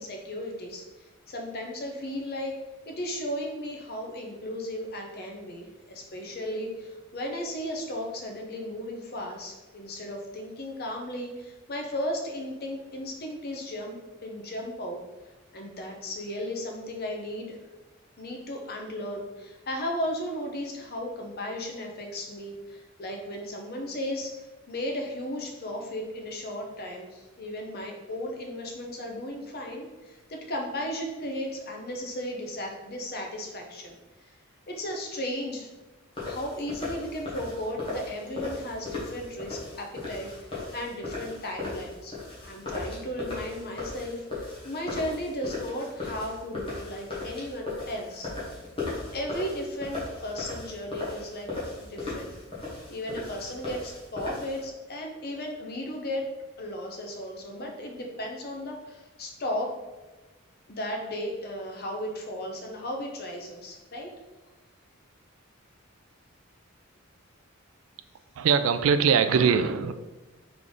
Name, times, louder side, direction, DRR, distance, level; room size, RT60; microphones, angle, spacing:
voice 1, 0.0-2.5 2.9-15.0 15.5-17.6 18.2-34.3 34.7-35.7 36.2-48.3 49.1-51.5 51.8-52.3 52.9-56.3 56.6-59.7 60.7-64.1, left 1 dB, 50° left, 1 dB, 0.8 m, -35 dB
sound 1, 36.1-54.6, left 2 dB, 25° left, 1.3 m, -37 dB
voice 2, 68.4-69.9, right 6 dB, 70° right, 11 dB, 0.3 m, -22 dB
3.7 x 3.4 x 3.8 m, 1.1 s
head